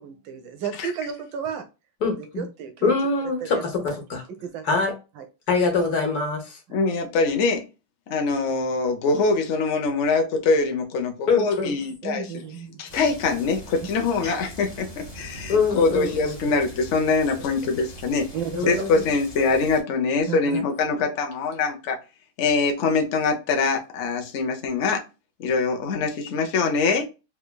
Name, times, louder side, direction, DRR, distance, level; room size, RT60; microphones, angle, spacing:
voice 1, 0.0-1.7 2.1-2.9 3.4-3.6 4.4-4.6 5.2-5.3 12.0-12.8 18.3-18.7 20.3-20.6, right 7 dB, 75° right, 1.2 m, -33 dB
voice 2, 2.0-2.4 2.8-4.2 4.6-4.9 5.5-6.6 11.3-11.7 14.2-14.3 15.5-16.6 18.5-19.1, left 4 dB, 55° left, 1.4 m, -24 dB
voice 3, 6.7-7.6 8.1-12.4 12.8-18.3 18.7-22.0 22.4-25.0 25.4-27.0, left 4 dB, 75° left, 0.6 m, -23 dB
sound 1, 12.9-19.8, right 1 dB, 30° left, 0.7 m, -42 dB
3.4 x 3.3 x 2.2 m
omnidirectional pair, 2.3 m